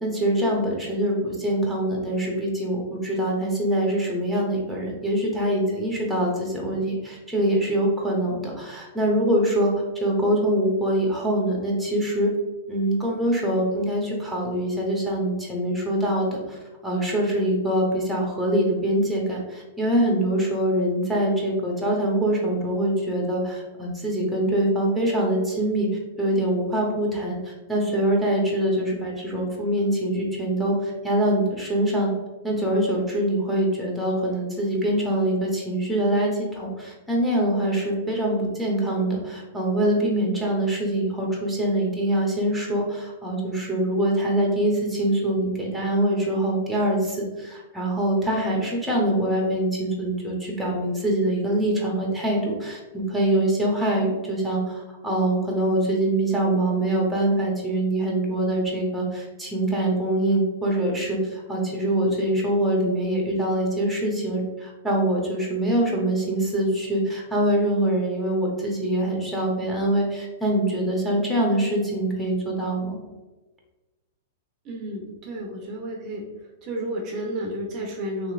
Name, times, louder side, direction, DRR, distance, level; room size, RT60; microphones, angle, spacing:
voice 1, 0.0-9.7 10.0-12.3 12.7-25.9 26.2-32.1 32.4-73.0, right 1 dB, 5° right, -2 dB, 0.8 m, -24 dB
voice 2, 74.6-76.2 76.6-78.3, right 1 dB, 40° right, -1 dB, 0.6 m, -31 dB
3.0 x 2.9 x 2.4 m, 1.2 s
hypercardioid pair, 115°, 0 cm